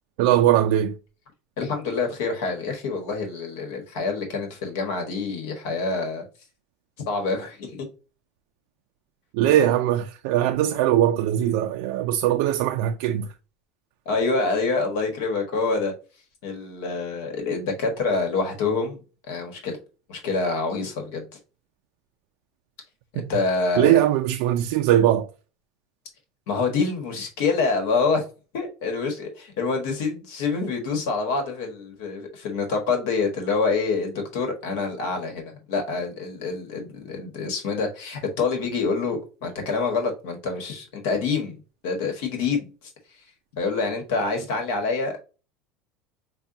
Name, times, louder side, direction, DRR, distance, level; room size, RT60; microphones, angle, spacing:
voice 1, 0.2-1.0 9.3-13.3 23.2-23.3 23.8-25.3, right 12 dB, 75° right, 0.3 m, -20 dB
voice 2, 1.6-6.2 7.0-7.9 14.0-15.9 16.4-19.8 20.1-21.2 23.1-24.0 26.5-28.3 28.5-41.6 41.8-42.7 43.6-45.1, left 4 dB, 80° left, 1.3 m, -26 dB
5.4 x 2.2 x 2.6 m
supercardioid pair, 135°, 0 cm